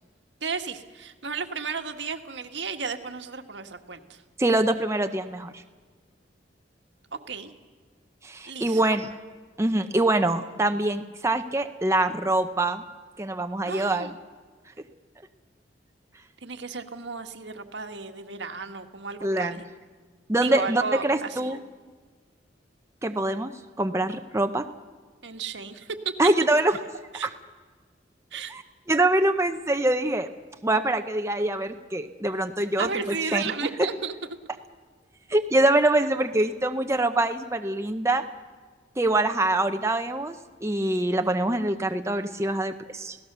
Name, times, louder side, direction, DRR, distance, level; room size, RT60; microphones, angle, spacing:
voice 1, 0.4-4.2 7.3-7.5 8.5-9.0 13.7-14.1 16.4-19.6 20.4-21.6 25.2-26.0 27.1-27.3 28.3-28.5 32.8-34.1, right 5 dB, 75° right, 5 dB, 1.7 m, -34 dB
voice 2, 4.4-5.6 8.2-9.1 9.6-12.8 13.2-14.1 19.2-19.6 20.3-21.6 23.0-23.5 23.8-24.7 26.2-26.8 27.2-27.3 28.5-28.6 28.9-30.3 30.6-33.4 33.8-33.9 35.3-38.3 39.0-43.2, right 2 dB, 15° right, 6 dB, 0.8 m, -24 dB
29.0 x 17.0 x 6.8 m, 1.4 s
head